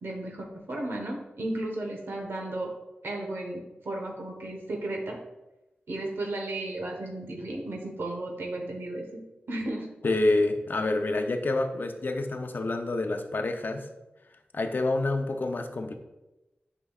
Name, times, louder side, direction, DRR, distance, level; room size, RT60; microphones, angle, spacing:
voice 1, 0.0-2.7 3.0-5.2 5.9-9.2 9.5-9.9, right 1 dB, 80° right, 0 dB, 1.2 m, -34 dB
voice 2, 10.0-13.9 14.5-15.9, left 2 dB, 55° left, 6 dB, 0.7 m, -27 dB
8.4 x 5.3 x 2.4 m, 1.0 s
wide cardioid pair, 75°, 4 cm